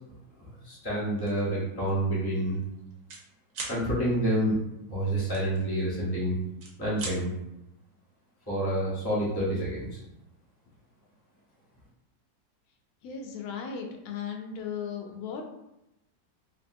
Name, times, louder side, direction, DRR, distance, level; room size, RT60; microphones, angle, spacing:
voice 1, 0.4-2.6 3.7-4.6 4.9-6.4 6.8-7.3 8.5-9.9, right 1 dB, 20° left, -7 dB, 0.8 m, -28 dB
sound 1, 1.2-1.4 1.9-2.1 2.3-3.2 3.5-3.8 5.3-6.1 6.5-7.2, right 3 dB, 70° right, 1.2 m, -39 dB
voice 2, 13.0-15.4, left 7 dB, 70° left, 2 dB, 0.9 m, -36 dB
2.9 x 2.7 x 2.6 m, 0.86 s
omnidirectional pair, 1.8 m